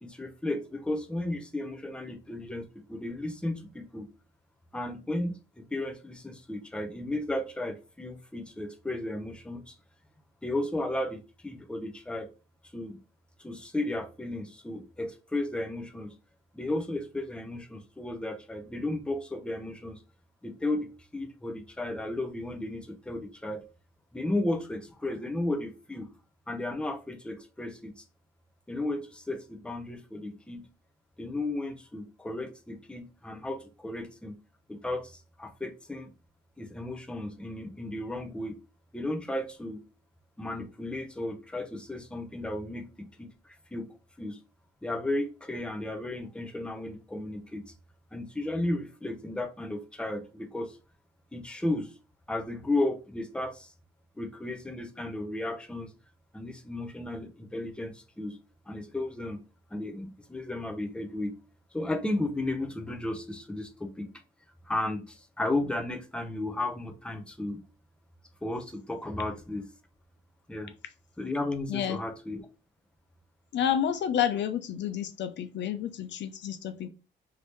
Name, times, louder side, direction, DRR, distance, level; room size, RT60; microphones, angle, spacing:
voice 1, 0.0-4.1 4.7-9.7 10.4-12.3 12.7-13.0 13.4-16.1 16.5-20.0 20.4-23.6 24.1-26.1 26.5-28.0 28.7-30.7 31.2-34.4 34.7-36.1 36.6-38.6 38.9-39.8 40.4-43.9 44.2-44.4 44.8-47.6 48.1-50.8 51.3-51.9 52.3-53.7 54.2-55.9 56.3-58.4 58.7-59.4 59.7-61.4 61.7-64.1 64.7-67.6 68.4-69.7 70.5-70.7 71.2-72.4, left 2 dB, 5° left, 0.6 m, -34 dB
voice 2, 73.5-76.9, left 9 dB, 65° left, 0.5 m, -30 dB
3.0 x 2.7 x 3.4 m
cardioid pair, 90°, 20 cm